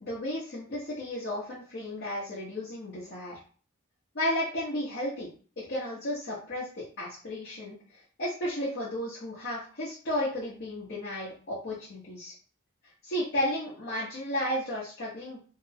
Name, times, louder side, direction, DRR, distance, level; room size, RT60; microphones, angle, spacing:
voice 1, 0.0-3.4 4.1-5.3 5.6-12.3 13.0-15.4, left 1 dB, 55° left, -9 dB, 0.8 m, -33 dB
2.8 x 2.0 x 2.7 m, 0.41 s
head